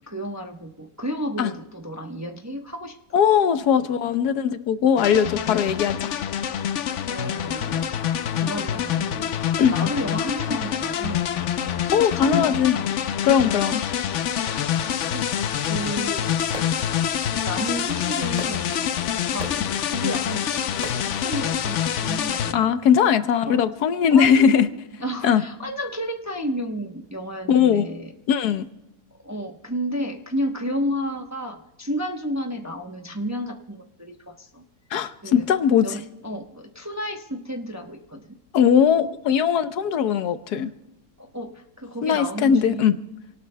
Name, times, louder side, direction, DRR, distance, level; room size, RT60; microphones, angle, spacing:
voice 1, 0.1-3.2 5.7-5.9 7.1-9.3 9.7-12.9 14.8-15.3 15.6-16.4 16.9-18.8 19.3-19.5 19.9-22.7 23.5-23.6 24.1-24.5 25.0-28.1 29.2-34.6 35.2-35.5 35.8-38.4 41.2-43.0, equal, 15° right, 3 dB, 0.7 m, -32 dB
voice 2, 3.1-6.2 9.6-9.7 11.9-12.8 13.2-13.8 22.5-24.7 25.2-25.4 27.5-27.9 28.3-28.7 34.9-36.0 38.5-40.7 42.0-42.9, left 8 dB, 85° left, 11 dB, 1.4 m, -19 dB
sound 1, 5.0-22.5, left 9 dB, 60° left, 0.8 m, -26 dB
Fireworks, 16.2-22.2, right 1 dB, 30° right, 2.8 m, -41 dB
27.5 x 18.5 x 2.2 m, 0.94 s
omnidirectional pair, 1.6 m